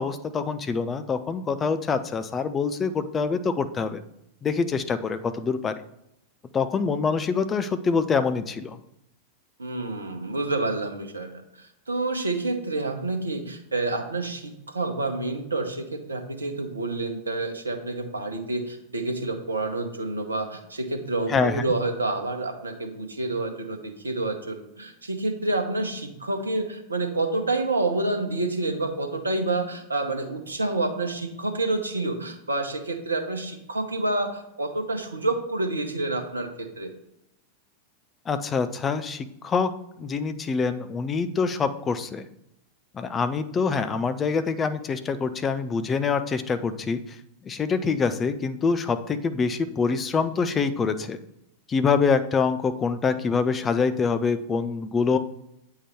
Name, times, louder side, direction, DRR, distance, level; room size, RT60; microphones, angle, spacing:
voice 1, 0.0-4.0 4.4-5.8 6.5-8.8 21.3-21.7 38.3-39.7 40.0-42.2 42.9-47.2 47.4-51.2 51.7-55.2, left 5 dB, 20° left, 10 dB, 0.5 m, -25 dB
voice 2, 9.6-36.5 36.8-36.9, right 2 dB, 75° right, 5 dB, 0.9 m, -28 dB
8.2 x 3.8 x 4.4 m, 0.80 s
figure-of-eight pair, 90°, 0 cm